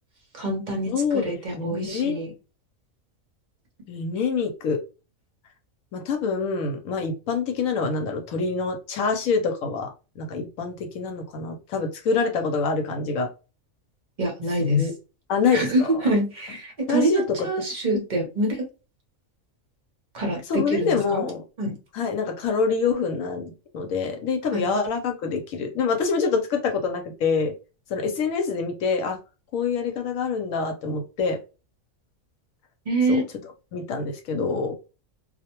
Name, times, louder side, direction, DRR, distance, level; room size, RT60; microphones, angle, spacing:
voice 1, 0.3-0.9 1.2-2.3 14.2-14.9 15.5-18.7 20.1-21.2 21.6-21.7 24.5-24.6 32.9-33.2, right 1 dB, 40° right, 1 dB, 0.7 m, -25 dB
voice 2, 0.9-2.2 3.9-4.8 5.9-9.9 10.2-13.3 14.8-14.9 15.3-15.9 16.9-17.5 17.9-18.0 20.5-21.4 21.9-27.5 27.9-29.2 29.5-31.4 33.1-33.2 33.7-34.7, left 5 dB, 80° left, 4 dB, 1.0 m, -26 dB
2.4 x 2.1 x 2.9 m, 0.32 s
omnidirectional pair, 1.4 m